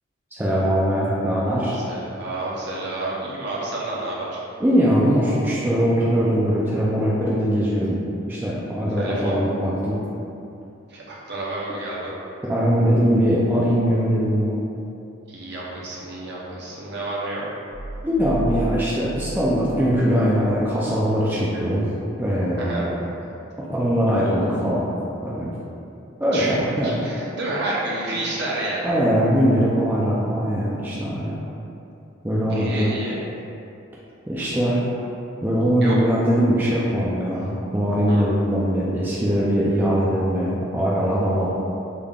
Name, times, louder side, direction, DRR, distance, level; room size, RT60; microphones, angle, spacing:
voice 1, 0.3-1.8 4.6-8.0 8.3-10.0 12.5-14.6 18.0-21.9 22.2-23.0 23.7-24.9 25.2-25.5 26.2-27.1 28.8-31.4 32.2-32.9 34.3-34.8 35.4-41.5, equal, 10° right, -7 dB, 0.3 m, -21 dB
voice 2, 1.7-4.4 8.9-9.3 10.9-12.1 15.3-17.4 22.6-22.8 26.3-26.6 26.8-28.9 32.5-33.2 35.8-36.0 38.1-38.3, right 2 dB, 55° right, -6 dB, 0.7 m, -30 dB
sound 1, 17.7-20.7, right 2 dB, 85° left, 0.6 m, -33 dB
3.6 x 3.4 x 2.3 m, 2.7 s
head